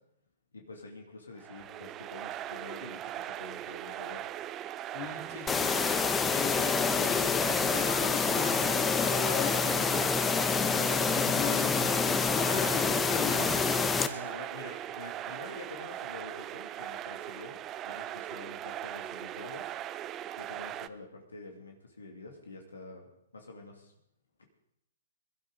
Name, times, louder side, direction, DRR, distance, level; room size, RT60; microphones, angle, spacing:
voice 1, 0.5-4.2 14.1-17.6 17.8-19.7 20.4-23.1 23.3-23.9 24.4-24.5, left 3 dB, 90° left, 2 dB, 2.5 m, -47 dB
sound 1, 1.4-20.9, right 12 dB, 25° right, 0.6 m, -40 dB
voice 2, 4.9-5.7 6.3-10.1 10.7-13.5, left 6 dB, 45° left, 2 dB, 3.5 m, -39 dB
sound 2, 5.5-14.1, left 5 dB, 15° left, 0.9 m, -27 dB
22.0 x 12.5 x 4.0 m, 0.78 s
hypercardioid pair, 125°, 0 cm